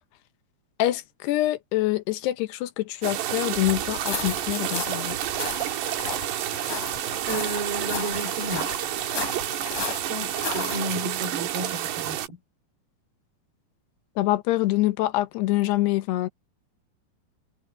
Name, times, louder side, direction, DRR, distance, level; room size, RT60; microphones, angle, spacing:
voice 1, 0.8-5.2 14.2-16.3, left 16 dB, 80° left, 3.1 m, -25 dB
sound 1, 3.0-12.3, right 12 dB, 90° right, 3.7 m, -30 dB
sound 2, 3.9-10.8, left 4 dB, 45° left, 8.3 m, -35 dB
voice 2, 7.3-8.7 10.1-12.4, right 2 dB, 70° right, 7.2 m, -32 dB
omnidirectional pair, 4.7 m